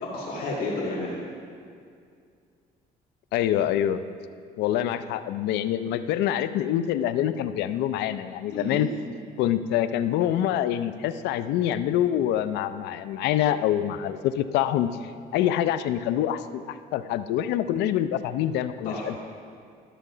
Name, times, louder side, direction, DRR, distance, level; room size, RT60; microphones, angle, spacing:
voice 1, 0.0-1.2 8.5-8.9 18.8-19.2, left 2 dB, 55° left, -7 dB, 2.3 m, -31 dB
voice 2, 3.3-4.0 4.6-8.9 9.4-19.2, left 11 dB, 85° left, 12 dB, 0.5 m, -26 dB
12.0 x 6.6 x 5.0 m, 2.3 s
cardioid pair, 110°, 17 cm